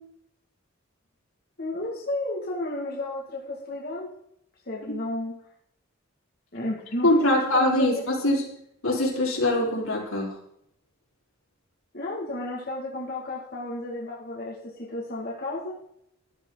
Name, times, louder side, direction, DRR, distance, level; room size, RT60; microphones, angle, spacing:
voice 1, 1.6-4.1 4.7-5.4 6.5-8.1 11.9-15.7, left 1 dB, 45° left, -4 dB, 2.3 m, -33 dB
voice 2, 7.0-8.4 8.8-10.4, left 1 dB, 85° left, -3 dB, 4.6 m, -23 dB
13.5 x 13.5 x 4.0 m, 0.75 s
head